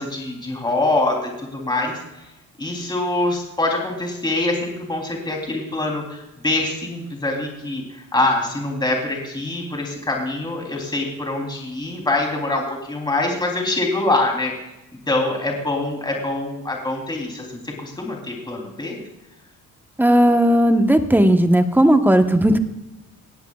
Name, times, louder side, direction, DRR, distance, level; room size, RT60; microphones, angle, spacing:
voice 1, 0.0-2.0 2.6-14.5 15.1-19.0, left 2 dB, 15° left, 0 dB, 3.4 m, -24 dB
voice 2, 20.0-22.6, right 1 dB, 5° right, 7 dB, 1.1 m, -15 dB
19.0 x 14.0 x 2.4 m, 0.93 s
cardioid pair, 110°, 33 cm